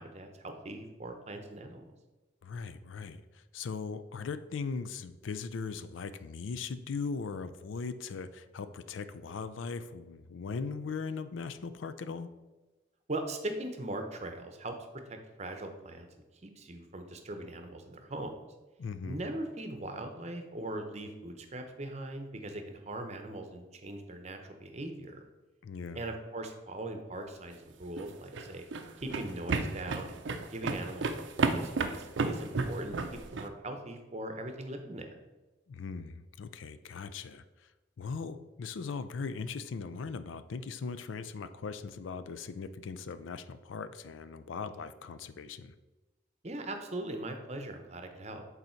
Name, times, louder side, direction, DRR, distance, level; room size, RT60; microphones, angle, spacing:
voice 1, 0.0-1.9 13.1-14.7 15.1-16.1 16.4-18.5 19.1-25.3 25.9-28.6 29.0-30.2 30.5-31.1 31.4-35.2 46.4-48.5, right 1 dB, 35° right, 5 dB, 0.7 m, -40 dB
voice 2, 2.4-12.3 18.8-19.2 25.6-26.0 35.7-37.4 38.0-45.7, left 5 dB, 75° left, 12 dB, 0.4 m, -39 dB
sound 1, 27.8-33.5, right 3 dB, 65° right, 0.5 m, -32 dB
8.0 x 4.0 x 4.4 m, 1.1 s
head